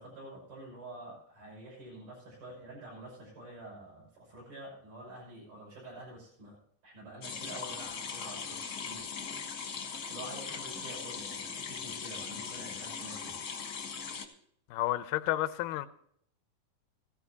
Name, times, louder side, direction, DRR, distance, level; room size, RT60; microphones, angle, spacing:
voice 1, 0.0-6.6 6.8-9.0 9.6-13.4, right 1 dB, 75° right, 7.7 m, -48 dB
sound 1, 7.2-14.3, left 6 dB, 45° left, 1.3 m, -40 dB
voice 2, 14.7-15.9, left 15 dB, 85° left, 2.3 m, -31 dB
15.0 x 13.5 x 2.8 m
omnidirectional pair, 3.8 m